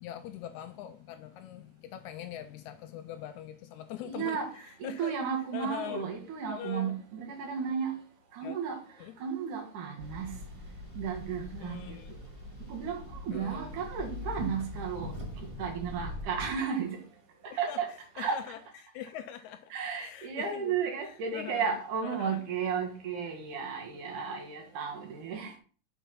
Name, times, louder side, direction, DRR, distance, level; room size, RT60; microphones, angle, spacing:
voice 1, 0.0-5.1 5.5-6.0 6.5-7.0 8.4-8.6 9.0-9.1 11.6-12.2 13.3-13.8 17.4-17.8 18.2-20.7 21.0-21.8 22.0-22.4, left 10 dB, 80° left, 1.7 m, -42 dB
voice 2, 4.0-4.5 4.8-7.9 8.3-8.8 9.2-10.3 10.9-12.0 12.7-15.1 15.6-17.0 17.4-17.9 18.2-18.4 19.7-25.6, right 6 dB, 75° right, 3.1 m, -34 dB
sound 1, 10.0-16.6, left 1 dB, 20° right, 0.8 m, -42 dB
6.9 x 4.6 x 5.8 m
omnidirectional pair, 3.6 m